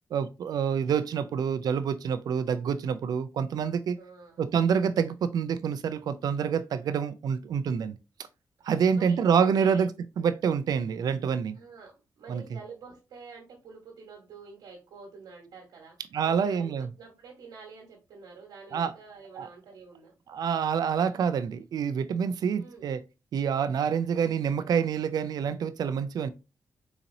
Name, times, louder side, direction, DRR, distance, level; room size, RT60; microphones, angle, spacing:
voice 1, 0.1-4.0 4.4-8.0 8.6-9.9 10.2-11.6 12.3-12.4 16.1-16.9 18.7-18.9 19.4-19.5 20.3-23.0 23.3-26.3, right 7 dB, 75° right, 0.4 m, -27 dB
voice 2, 4.0-4.5 8.7-9.9 11.5-16.0 16.2-20.1 22.6-22.9, right 4 dB, 90° right, 1.2 m, -48 dB
4.0 x 2.8 x 2.6 m
cardioid pair, 60°, 7 cm